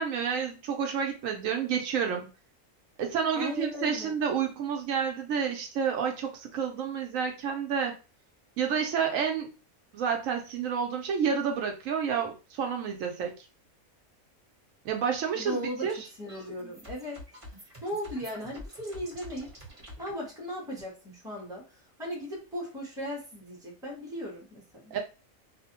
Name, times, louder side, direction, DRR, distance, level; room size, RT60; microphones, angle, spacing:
voice 1, 0.0-2.3 3.0-8.0 8.6-9.5 9.9-13.4 14.8-16.0 24.9-25.0, right 7 dB, 75° right, 4 dB, 1.0 m, -29 dB
voice 2, 3.3-4.2 15.3-15.9 16.2-17.2 17.8-19.5 20.0-25.0, equal, 5° right, -3 dB, 0.8 m, -37 dB
sound 1, 15.8-20.1, left 1 dB, 25° right, 1.0 m, -47 dB
2.5 x 2.1 x 2.8 m, 0.31 s
omnidirectional pair, 1.4 m